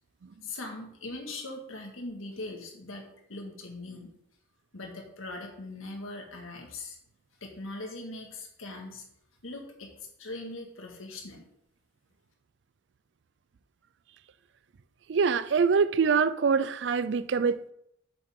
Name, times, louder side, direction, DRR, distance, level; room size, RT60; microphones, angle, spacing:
voice 1, 0.4-4.1 4.7-7.0 7.4-9.0 9.4-9.9 10.2-11.5, left 2 dB, 90° left, 1.9 m, -40 dB
voice 2, 15.1-17.7, right 5 dB, 60° right, 0.4 m, -24 dB
8.9 x 6.7 x 3.7 m
head